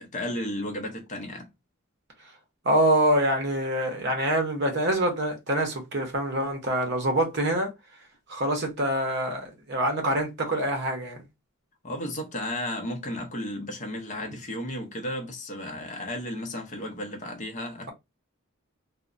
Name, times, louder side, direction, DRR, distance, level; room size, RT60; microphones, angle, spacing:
voice 1, 0.0-1.5 11.8-17.9, left 1 dB, 35° left, 0.6 m, -34 dB
voice 2, 2.6-7.7 8.3-11.2, right 1 dB, 50° right, 0.7 m, -25 dB
2.8 x 2.1 x 2.5 m
head